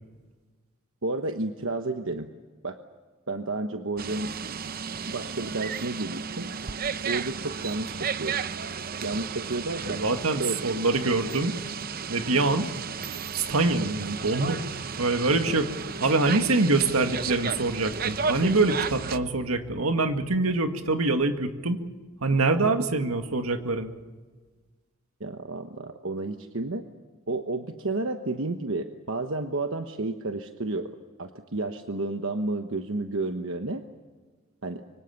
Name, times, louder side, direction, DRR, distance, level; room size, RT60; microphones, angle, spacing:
voice 1, 1.0-2.3 2.6-2.8 3.3-4.3 5.1-6.5 7.0-8.4 9.0-10.0 10.3-10.7 15.4-15.6 25.2-26.9 27.3-30.9 31.2-33.8 34.6-34.8, right 2 dB, 60° right, 6 dB, 1.2 m, -31 dB
sound 1, 4.0-19.2, right 6 dB, 40° right, 0.8 m, -34 dB
voice 2, 9.9-11.5 12.1-12.7 13.4-14.6 15.0-15.7 16.0-21.8 22.2-23.9, right 3 dB, 80° right, 7 dB, 2.0 m, -24 dB
25.5 x 24.5 x 7.2 m, 1.4 s
head